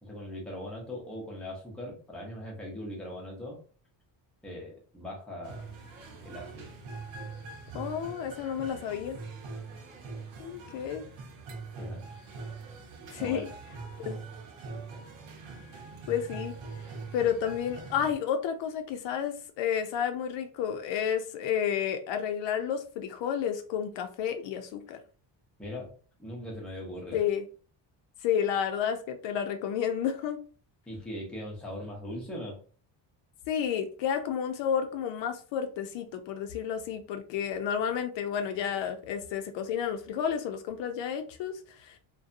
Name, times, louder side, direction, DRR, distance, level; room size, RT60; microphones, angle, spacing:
voice 1, 0.0-3.6 4.4-5.7 6.2-6.7 11.8-12.2 13.2-13.4 25.6-25.9 26.2-27.2 30.9-32.6, left 1 dB, ahead, -2 dB, 0.5 m, -40 dB
sound 1, 5.4-18.2, right 3 dB, 80° right, 0.9 m, -43 dB
voice 2, 7.7-9.2 10.4-11.0 13.1-13.5 14.0-14.2 16.1-16.5 17.1-25.0 27.1-27.4 28.2-30.4 33.5-42.0, left 8 dB, 70° left, 7 dB, 0.5 m, -31 dB
2.6 x 2.2 x 2.5 m, 0.39 s
cardioid pair, 175°, 45 cm